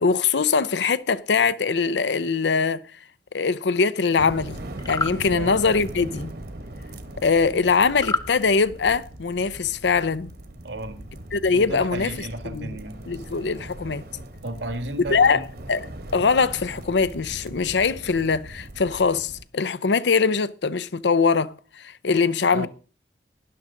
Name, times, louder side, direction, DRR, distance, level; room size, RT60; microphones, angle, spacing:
voice 1, 0.0-2.8 3.3-4.6 4.9-6.3 7.2-10.3 11.3-12.1 12.5-12.8 13.1-14.0 15.1-15.4 15.7-15.9 16.1-21.5 21.8-22.7, left 5 dB, 75° left, 0.6 m, -22 dB
sound 1, 4.2-19.4, right 1 dB, 60° right, 1.3 m, -39 dB
sound 2, 4.8-5.2 8.0-8.3, left 3 dB, 20° left, 0.7 m, -26 dB
voice 2, 5.3-5.6 10.6-11.1 11.5-13.0 14.4-15.4 22.5-22.7, right 1 dB, 80° right, 1.7 m, -33 dB
12.5 x 11.0 x 3.9 m
head